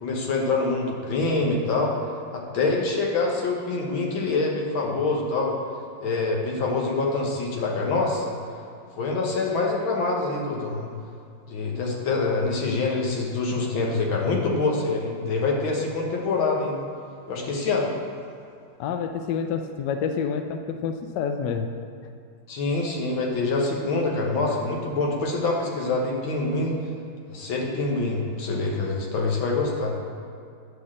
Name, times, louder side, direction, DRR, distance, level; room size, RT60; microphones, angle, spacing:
voice 1, 0.0-1.9 2.3-5.6 6.0-8.3 9.0-10.9 11.5-16.9 17.3-17.9 22.5-26.8 27.3-29.9, left 3 dB, 90° left, -1 dB, 2.0 m, -25 dB
voice 2, 18.8-21.7, left 6 dB, 70° left, 6 dB, 1.1 m, -28 dB
9.7 x 4.1 x 7.4 m, 2.4 s
omnidirectional pair, 2.1 m